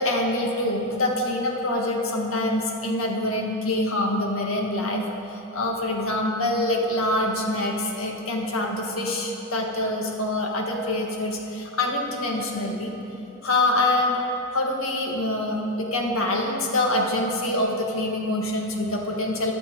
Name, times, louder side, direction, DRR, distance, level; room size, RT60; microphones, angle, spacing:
voice 1, 0.0-13.0 13.4-14.2 14.5-19.5, left 1 dB, 70° left, 1 dB, 1.8 m, -25 dB
22.0 x 7.5 x 4.6 m, 3.0 s
head